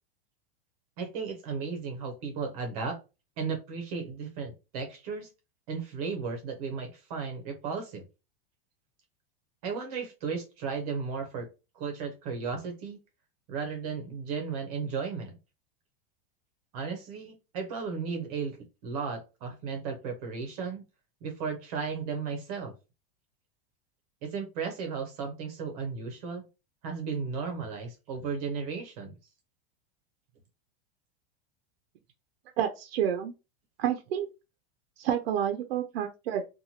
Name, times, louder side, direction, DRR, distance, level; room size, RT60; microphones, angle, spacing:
voice 1, 1.0-3.0 3.4-5.3 5.7-8.0 9.6-11.5 11.7-13.0 13.5-15.3 16.7-20.8 21.2-22.7 24.2-26.5 26.8-29.2, right 5 dB, 40° right, 0.6 m, -35 dB
voice 2, 32.6-33.3 33.8-34.3 35.0-36.5, right 9 dB, 85° right, 0.5 m, -29 dB
2.8 x 2.2 x 2.8 m
supercardioid pair, 180°, 30 cm